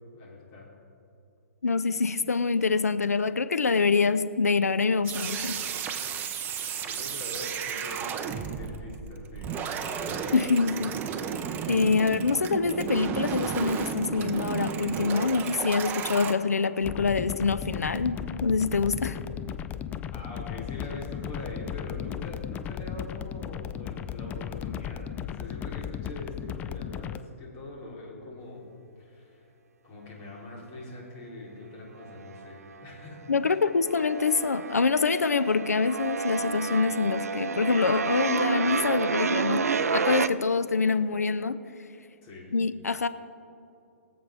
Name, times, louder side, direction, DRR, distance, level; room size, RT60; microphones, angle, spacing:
voice 1, 0.1-0.7 6.8-9.5 10.0-10.3 20.1-28.7 28.9-29.5 29.8-33.3 42.2-42.5, left 2 dB, 35° left, -3 dB, 3.2 m, -43 dB
voice 2, 1.6-5.6 10.3-10.9 11.7-19.2 33.3-39.6 39.9-41.6 42.5-43.1, left 4 dB, 85° left, 12 dB, 0.5 m, -25 dB
sound 1, 5.0-16.3, right 7 dB, 20° right, 0.7 m, -33 dB
sound 2, 16.8-27.2, left 9 dB, 20° left, 0.4 m, -36 dB
sound 3, 32.0-32.8 33.1-40.3, right 5 dB, 80° right, 0.5 m, -30 dB
22.5 x 7.7 x 3.5 m, 2.7 s
hypercardioid pair, 125°, 8 cm